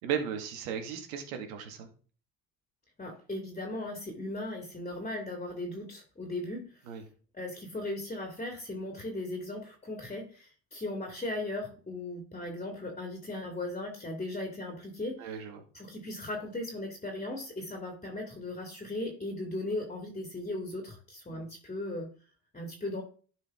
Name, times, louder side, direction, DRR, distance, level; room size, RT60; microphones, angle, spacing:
voice 1, 0.0-1.9 6.9-7.0 15.2-15.6 21.3-21.4, right 8 dB, 85° right, 5 dB, 1.8 m, -36 dB
voice 2, 3.0-6.8 7.3-15.4 15.7-22.1 22.5-23.0, left 2 dB, 20° left, 3 dB, 2.2 m, -37 dB
11.5 x 4.8 x 3.6 m, 0.40 s
supercardioid pair, 85°, 40 cm